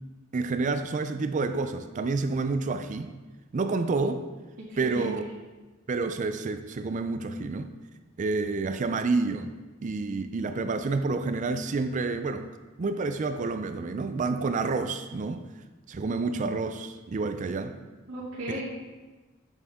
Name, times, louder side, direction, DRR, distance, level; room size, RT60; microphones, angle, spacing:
voice 1, 0.3-3.1 3.5-4.3 4.8-5.3 5.9-7.7 8.2-9.5 9.8-12.5 12.8-15.4 15.9-17.8 18.5-18.6, right 3 dB, 35° right, 9 dB, 0.4 m, -29 dB
voice 2, 4.7-5.1 18.1-18.6, right 1 dB, 55° right, -13 dB, 2.4 m, -35 dB
8.5 x 6.4 x 3.5 m, 1.2 s
head